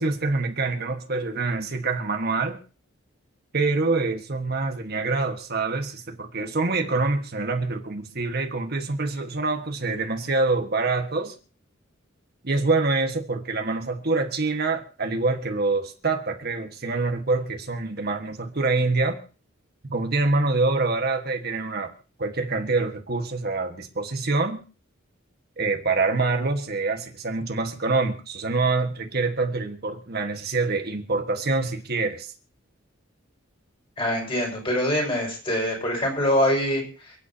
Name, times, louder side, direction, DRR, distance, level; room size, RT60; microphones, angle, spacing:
voice 1, 0.0-2.6 3.5-11.3 12.4-19.2 19.8-21.9 22.2-24.6 25.6-32.3, right 3 dB, 50° right, 1.5 m, -25 dB
voice 2, 34.0-37.1, left 1 dB, 30° left, 5.8 m, -24 dB
28.5 x 9.6 x 2.8 m
head